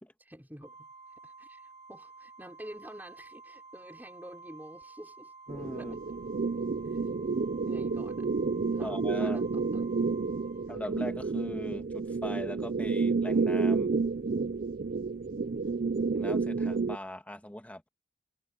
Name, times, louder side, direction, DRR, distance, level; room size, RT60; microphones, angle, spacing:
voice 1, 0.2-0.9 1.2-5.3 5.8-6.0 6.8-7.1 7.6-8.3 8.7-10.0 15.4-15.8, equal, 10° right, 4.4 m, -49 dB
Organ, 0.6-11.4, right 4 dB, 70° left, 2.9 m, -51 dB
voice 2, 5.5-6.0 8.8-9.4 10.7-13.9 16.1-17.9, left 1 dB, 10° left, 1.9 m, -40 dB
sound 1, 5.5-17.0, right 4 dB, 50° right, 0.5 m, -30 dB
head